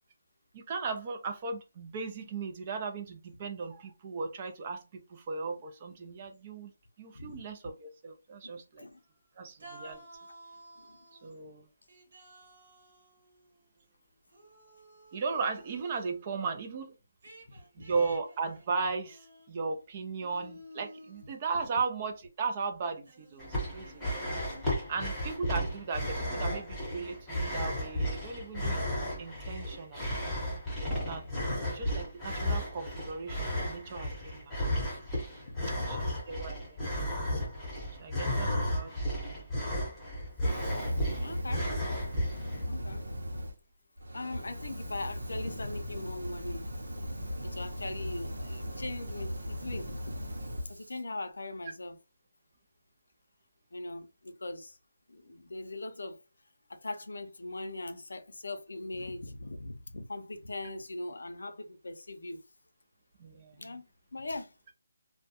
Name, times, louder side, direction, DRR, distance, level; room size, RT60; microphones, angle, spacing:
voice 1, 0.5-6.7 7.0-8.9 9.4-10.0 11.2-11.6 15.1-16.9 17.8-19.2 19.5-24.2 24.9-28.8 29.2-30.1 30.8-31.2 31.7-34.8 35.9-36.0 36.3-36.8 38.0-39.1 63.2-63.5, right 4 dB, 30° right, 0.5 m, -36 dB
voice 2, 7.1-7.4 8.4-8.5 8.8-9.0 10.8-11.0 17.5-17.9 31.2-31.6 35.5-36.1 41.2-41.7 42.6-43.0 44.1-46.7 47.4-50.0 50.6-52.0 53.7-54.8 55.1-56.2 56.7-62.4 63.6-63.8 64.1-64.5, left 2 dB, 80° left, 0.5 m, -40 dB
sound 1, 9.0-9.3 9.6-11.4 11.9-13.9 14.3-16.3 17.2-19.8 20.2-21.7 22.2-22.3 23.0-24.6, right 1 dB, 55° right, 1.0 m, -54 dB
sound 2, 23.4-42.6, equal, 5° left, 0.9 m, -34 dB
Fire, 40.4-43.5 44.0-51.0, equal, 90° right, 0.8 m, -37 dB
2.2 x 2.1 x 2.8 m
hypercardioid pair, 165°, 0 cm